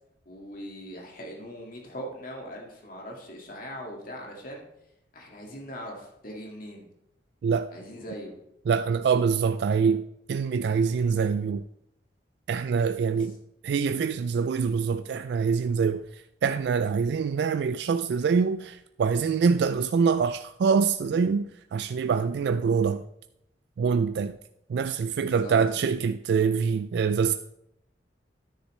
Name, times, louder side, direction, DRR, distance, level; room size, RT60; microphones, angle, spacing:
voice 1, 0.3-4.6 5.1-6.9 7.7-8.3 25.2-25.6, equal, 50° left, 2.0 m, -40 dB
voice 2, 8.7-11.6 12.5-13.3 13.6-23.0 23.8-24.4 24.7-27.3, right 5 dB, 65° right, 0.3 m, -25 dB
10.0 x 9.7 x 3.2 m
head